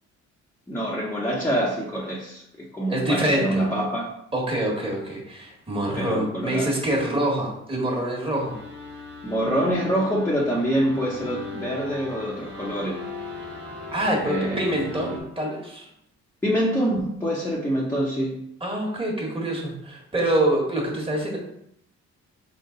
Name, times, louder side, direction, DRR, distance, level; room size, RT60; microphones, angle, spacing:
voice 1, 0.7-4.1 6.0-6.7 9.2-13.0 14.2-14.7 16.4-18.4, equal, 10° left, -4 dB, 0.8 m, -25 dB
voice 2, 2.9-3.6 4.3-8.6 13.9-15.9 18.6-21.4, right 1 dB, 20° right, -2 dB, 1.5 m, -25 dB
sound 1, 8.4-15.2, left 3 dB, 35° right, 1.5 m, -38 dB
3.8 x 3.1 x 3.8 m, 0.75 s
cardioid pair, 90°, 30 cm